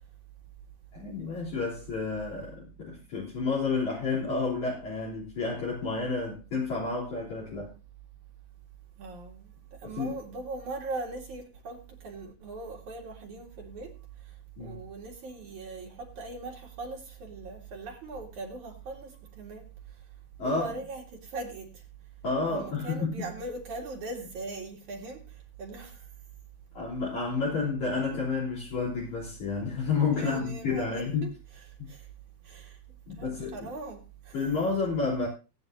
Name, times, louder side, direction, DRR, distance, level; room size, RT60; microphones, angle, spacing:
voice 1, 0.9-7.7 9.8-10.2 14.6-14.8 20.4-20.7 22.2-23.3 26.7-31.3 31.8-31.9 33.1-33.7 34.3-35.3, left 4 dB, 50° left, 4.8 m, -30 dB
voice 2, 9.0-13.9 14.2-14.3 14.6-19.7 20.4-21.8 22.4-26.0 30.1-32.0 32.4-32.8 33.2-34.4, right 3 dB, 55° right, 3.2 m, -40 dB
19.0 x 9.6 x 2.6 m
omnidirectional pair, 4.3 m